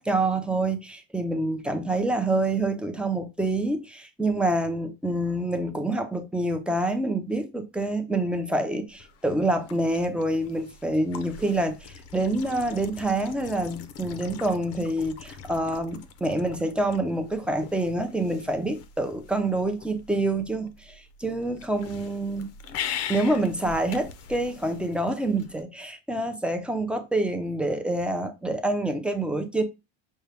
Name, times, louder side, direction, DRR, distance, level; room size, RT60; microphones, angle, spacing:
voice 1, 0.0-22.5 23.1-29.6, right 2 dB, 5° right, 0.5 m, -27 dB
sound 1, 8.9-25.6, left 7 dB, 50° left, 0.6 m, -42 dB
5.4 x 2.3 x 3.3 m
cardioid pair, 125°, 31 cm